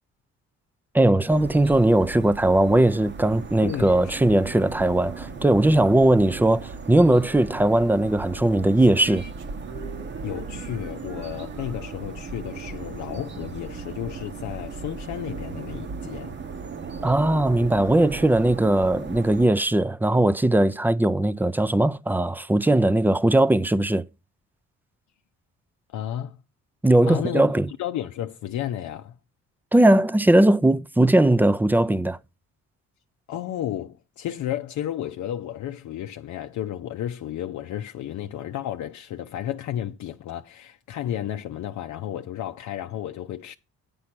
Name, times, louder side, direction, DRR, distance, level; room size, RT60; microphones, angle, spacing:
voice 1, 0.9-9.2 17.0-24.0 26.8-27.7 29.7-32.2, right 1 dB, 5° right, 0.5 m, -19 dB
sound 1, 1.3-19.5, right 4 dB, 35° right, 1.0 m, -37 dB
voice 2, 3.6-4.2 4.6-4.8 10.2-16.4 25.9-26.4 27.1-27.5 27.8-29.2 33.3-43.5, left 11 dB, 70° left, 0.6 m, -32 dB
sound 2, 8.8-14.1, right 8 dB, 85° right, 1.5 m, -45 dB
8.5 x 5.4 x 5.9 m
cardioid pair, 90°, 30 cm